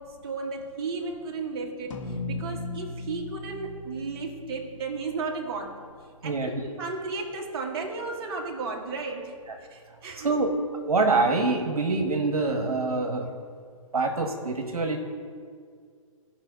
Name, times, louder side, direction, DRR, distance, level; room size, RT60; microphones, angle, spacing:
voice 1, 0.0-5.8 6.2-9.3 9.7-10.3, right 4 dB, 45° right, 1 dB, 1.4 m, -34 dB
sound 1, 1.9-6.5, left 2 dB, 60° left, 1.2 m, -38 dB
voice 2, 10.2-10.5 10.9-13.3 13.9-15.0, right 3 dB, 80° right, 3 dB, 1.2 m, -25 dB
15.0 x 5.2 x 3.9 m, 2.1 s
figure-of-eight pair, 130°, 18 cm